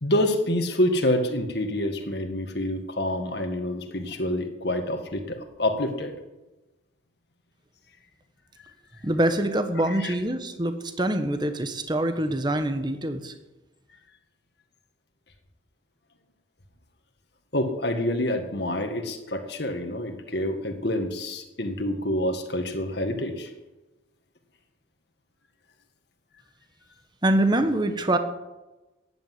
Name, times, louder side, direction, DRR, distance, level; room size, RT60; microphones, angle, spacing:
voice 1, 0.0-6.1 9.9-10.2 17.5-23.5, left 1 dB, 55° left, 5 dB, 1.9 m, -27 dB
voice 2, 9.0-13.3 27.2-28.2, right 1 dB, 20° right, 8 dB, 1.2 m, -24 dB
15.0 x 10.5 x 7.9 m, 1.1 s
head